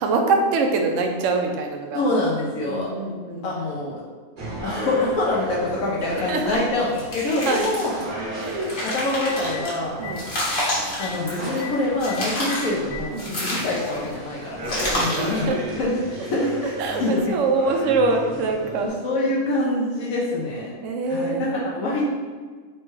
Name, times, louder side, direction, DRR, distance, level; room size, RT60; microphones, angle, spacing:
voice 1, 0.0-2.0 2.7-3.5 6.3-6.6 7.5-7.7 8.4-8.7 10.0-10.3 13.1-13.4 14.9-15.6 16.8-18.9 20.8-21.5, right 3 dB, 70° right, 3 dB, 0.9 m, -24 dB
voice 2, 1.9-2.9 3.4-4.0 4.6-7.9 8.8-10.0 11.0-15.5 15.8-15.9 16.2-17.3 18.8-20.7 21.1-22.0, left 2 dB, 85° left, -5 dB, 1.1 m, -25 dB
sound 1, 4.4-18.9, right 1 dB, 45° right, 0.8 m, -35 dB
Telephone, 6.4-6.5 8.7-8.8 9.1-9.6 10.0-10.1 10.5-10.7 10.9-11.1 11.6-11.7 12.1-12.2 12.5-13.0 14.0-14.1 15.6-15.7, left 11 dB, 65° left, 0.9 m, -36 dB
sound 2, 6.9-8.0 8.5-9.7 10.2-11.6 12.0-12.7 13.2-14.1 14.6-15.3, left 1 dB, 40° left, 1.3 m, -29 dB
4.3 x 2.2 x 4.6 m, 1.5 s
omnidirectional pair, 1.4 m